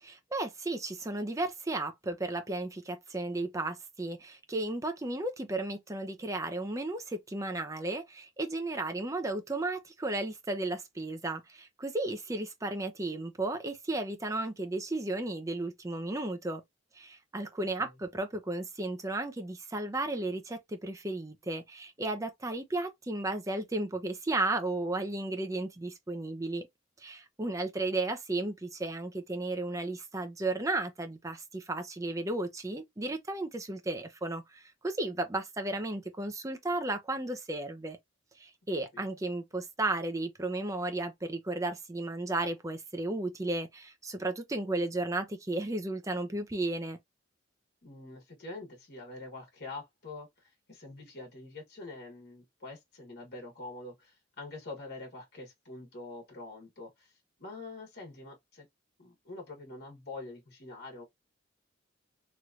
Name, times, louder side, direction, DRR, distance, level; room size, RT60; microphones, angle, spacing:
voice 1, 0.0-16.6 17.0-26.7 27.0-38.0 38.4-47.0, right 2 dB, 15° right, 0.5 m, -34 dB
voice 2, 47.8-57.1 57.4-58.7 59.0-61.0, left 2 dB, 55° left, 1.4 m, -45 dB
3.1 x 3.0 x 2.4 m
head